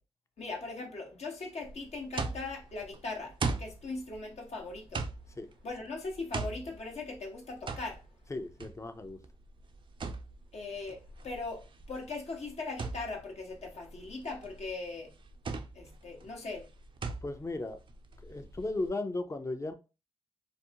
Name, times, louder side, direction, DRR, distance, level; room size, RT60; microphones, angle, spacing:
voice 1, 0.4-5.0 5.6-8.0 10.5-15.1 15.7-16.7, left 3 dB, 65° left, 0.8 m, -40 dB
sound 1, 1.6-18.9, right 4 dB, 45° right, 0.4 m, -40 dB
voice 2, 8.3-9.2 17.2-17.8 18.2-19.7, left 2 dB, 25° left, 0.5 m, -36 dB
2.5 x 2.0 x 2.7 m
supercardioid pair, 45°, 12 cm